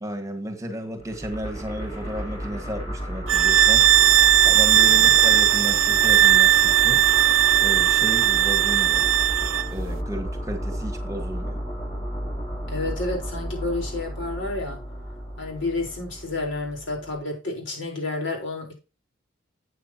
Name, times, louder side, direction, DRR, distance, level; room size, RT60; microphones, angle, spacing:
voice 1, 0.0-3.9 4.4-7.0 7.6-9.1 9.7-11.6, right 1 dB, 15° right, 6 dB, 1.6 m, -33 dB
sound 1, 1.0-17.2, equal, 30° left, 3.3 m, -33 dB
sound 2, 3.3-9.7, right 11 dB, 85° right, 0.6 m, -17 dB
voice 2, 12.7-14.8 15.4-18.7, left 2 dB, 70° left, 1 dB, 4.4 m, -30 dB
12.5 x 8.3 x 2.9 m, 0.29 s
head